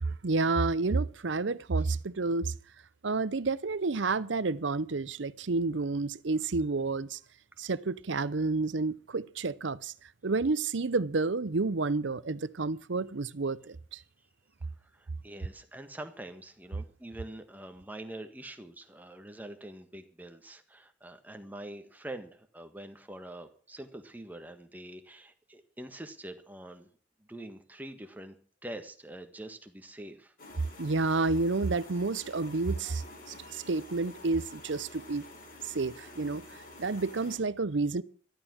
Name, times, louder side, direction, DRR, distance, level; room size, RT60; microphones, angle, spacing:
voice 1, 0.0-2.5 3.0-7.2 7.6-9.9 10.2-14.0 30.8-35.3 35.6-36.4 36.8-38.0, right 3 dB, 70° right, 0.7 m, -30 dB
voice 2, 14.8-26.9 27.3-28.3 28.6-30.3, right 1 dB, 10° right, 1.5 m, -45 dB
sound 1, 30.4-37.4, left 2 dB, 50° left, 4.1 m, -50 dB
13.0 x 12.5 x 6.3 m
head